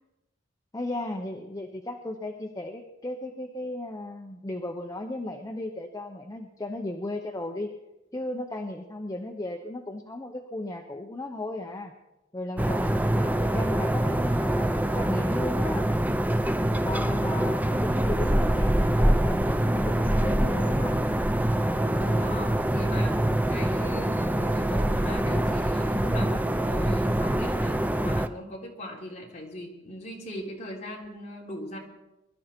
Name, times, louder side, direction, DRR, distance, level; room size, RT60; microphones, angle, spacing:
voice 1, 0.7-7.7 8.1-11.9 12.3-15.9 16.8-21.0, left 1 dB, 20° left, 3 dB, 1.0 m, -35 dB
sound 1, 12.6-28.3, right 1 dB, 10° right, 0.5 m, -25 dB
voice 2, 12.8-13.5 21.8-31.8, equal, 35° left, -2 dB, 3.5 m, -39 dB
22.0 x 12.5 x 4.5 m, 0.96 s
head